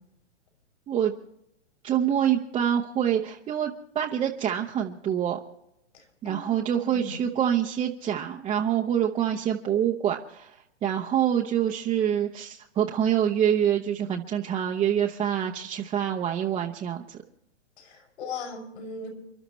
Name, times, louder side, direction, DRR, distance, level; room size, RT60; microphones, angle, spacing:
voice 1, 1.8-5.4 6.2-17.2, right 9 dB, 15° right, 0 dB, 0.8 m, -26 dB
voice 2, 5.9-7.2 17.8-19.1, left 3 dB, 65° left, 2 dB, 7.1 m, -39 dB
29.5 x 12.0 x 3.1 m, 0.80 s
hypercardioid pair, 130°, 36 cm